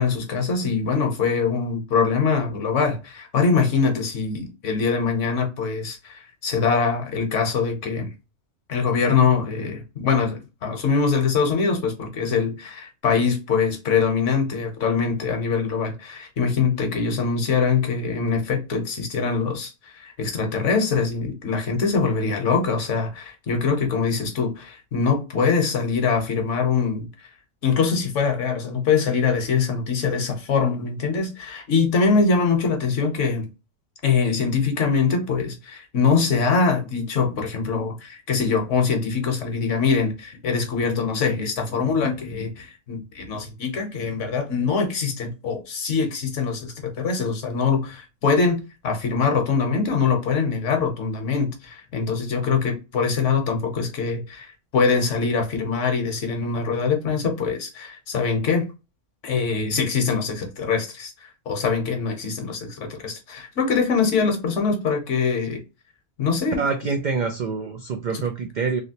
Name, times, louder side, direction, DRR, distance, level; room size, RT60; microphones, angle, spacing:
voice 1, 0.0-8.1 8.7-27.1 27.6-33.5 34.0-58.7 59.2-65.6 66.2-66.6 68.1-68.2, left 5 dB, 70° left, 1.2 m, -23 dB
voice 2, 66.6-68.8, right 5 dB, 75° right, 0.4 m, -26 dB
3.2 x 2.8 x 2.8 m
omnidirectional pair, 1.3 m